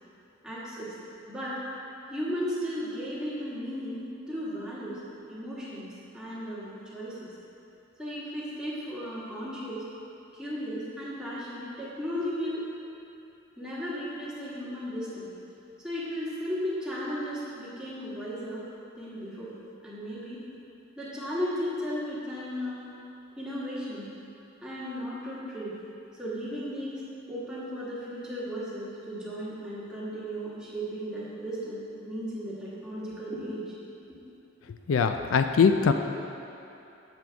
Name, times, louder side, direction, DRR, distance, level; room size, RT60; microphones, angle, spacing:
voice 1, 0.4-0.9 1.3-1.6 2.1-5.0 5.3-7.3 8.0-9.9 10.4-12.7 13.6-15.3 15.8-18.6 18.9-19.5 19.8-20.4 21.0-22.8 23.4-24.1 24.6-25.7 26.1-27.0 27.3-33.8, equal, 5° right, -9 dB, 1.5 m, -35 dB
voice 2, 34.9-35.9, left 6 dB, 90° left, 7 dB, 0.4 m, -22 dB
7.5 x 7.0 x 3.4 m, 2.8 s
head